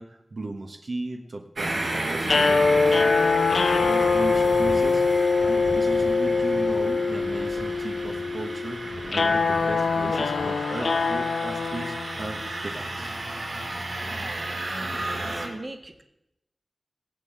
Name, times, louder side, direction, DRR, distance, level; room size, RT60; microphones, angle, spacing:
voice 1, 0.0-3.3 3.8-5.1 5.4-13.2, right 2 dB, 60° right, 3 dB, 1.3 m, -36 dB
sound 1, 1.6-15.5, right 2 dB, 80° right, 4.1 m, -33 dB
sound 2, 2.2-12.5, left 4 dB, 85° left, 0.8 m, -23 dB
voice 2, 14.0-14.5 15.2-16.0, right 2 dB, 35° right, 5 dB, 1.6 m, -40 dB
18.5 x 8.4 x 7.4 m, 0.86 s
wide cardioid pair, 95°, 0 cm